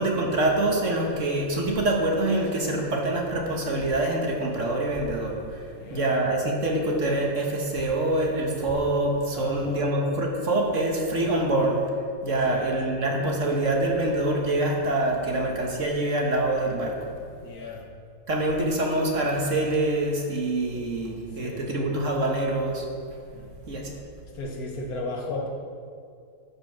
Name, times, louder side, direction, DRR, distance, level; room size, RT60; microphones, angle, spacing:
voice 1, 0.0-5.6 5.9-11.8 12.2-17.0 18.3-22.9 23.7-23.9, right 2 dB, 50° right, 0 dB, 1.6 m, -25 dB
voice 2, 5.7-6.2 9.3-9.9 12.5-12.8 17.4-17.8 21.4-21.7 23.3-23.5 24.3-25.5, left 2 dB, 65° left, 1 dB, 1.7 m, -35 dB
14.5 x 5.2 x 5.9 m, 2.3 s
omnidirectional pair, 1.7 m